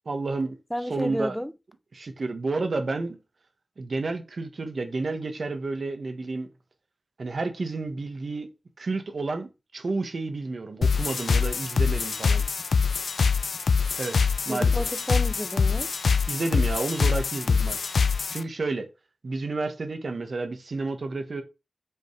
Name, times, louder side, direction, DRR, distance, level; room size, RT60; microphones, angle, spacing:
voice 1, 0.0-0.6 0.9-1.4 1.9-3.2 3.8-6.5 7.2-8.5 8.8-12.4 13.9-14.7 16.3-17.8 18.3-18.9 19.2-21.4, right 3 dB, 60° right, 1.5 m, -30 dB
voice 2, 0.7-1.5 14.5-15.9, equal, 5° left, 0.5 m, -31 dB
sound 1, 10.8-18.4, left 5 dB, 80° left, 0.5 m, -24 dB
7.4 x 5.7 x 3.4 m
wide cardioid pair, 90°, 0 cm